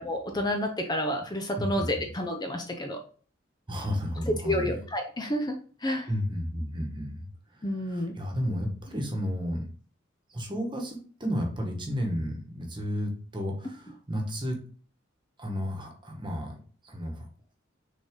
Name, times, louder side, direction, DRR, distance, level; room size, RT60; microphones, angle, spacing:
voice 1, 0.0-3.0 4.4-5.5 5.8-6.1 7.6-8.1, left 1 dB, 20° left, 3 dB, 0.7 m, -30 dB
voice 2, 1.6-2.1 3.7-4.8 6.1-9.6 10.3-14.6 15.4-16.5 16.8-17.3, equal, 25° right, 2 dB, 1.4 m, -32 dB
6.3 x 4.0 x 3.8 m, 0.43 s
head